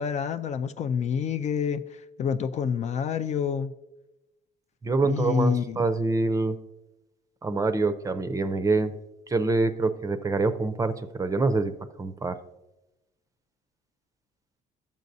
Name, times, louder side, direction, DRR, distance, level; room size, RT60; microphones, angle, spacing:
voice 1, 0.0-1.8 2.2-3.7 5.0-5.8, left 7 dB, 45° left, 0.4 m, -27 dB
voice 2, 4.8-6.6 7.4-8.9 9.3-11.7 12.0-12.4, right 3 dB, 20° right, 0.5 m, -25 dB
11.5 x 7.2 x 2.7 m
cardioid pair, 110°, 17 cm